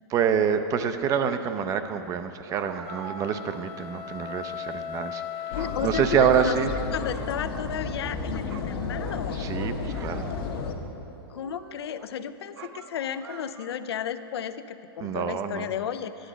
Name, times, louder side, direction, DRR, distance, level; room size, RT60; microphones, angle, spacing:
voice 1, 0.1-6.7 9.4-10.3 15.0-15.7, right 8 dB, 25° right, 10 dB, 0.4 m, -27 dB
sound 1, 2.5-3.6 4.0-4.1 5.0-5.2 5.5-6.5 7.0-8.2 8.5-10.7 11.2-12.1 12.5-13.9, right 7 dB, 85° right, 0.5 m, -45 dB
sound 2, 2.8-7.3, left 8 dB, 35° left, 0.4 m, -38 dB
voice 2, 5.5-6.6 6.9-9.4 11.3-16.3, left 9 dB, 90° left, 10 dB, 0.5 m, -33 dB
sound 3, 5.5-10.7, left 4 dB, 70° left, 0.9 m, -32 dB
10.0 x 7.4 x 5.0 m, 2.9 s
hypercardioid pair, 140°, 13 cm